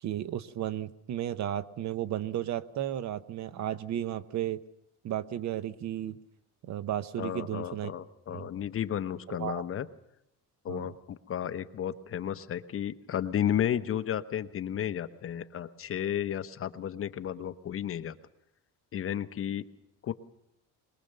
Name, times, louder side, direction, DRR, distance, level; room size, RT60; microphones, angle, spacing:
voice 1, 0.0-4.6 5.0-6.2 6.6-7.9 8.3-8.5 9.3-9.6 10.7-10.9, right 11 dB, 50° right, 14 dB, 0.9 m, -34 dB
voice 2, 7.2-9.9 10.6-18.2 18.9-19.6 20.0-20.1, left 10 dB, 40° left, 10 dB, 0.9 m, -33 dB
22.5 x 21.0 x 6.6 m, 0.83 s
cardioid pair, 135°, 35 cm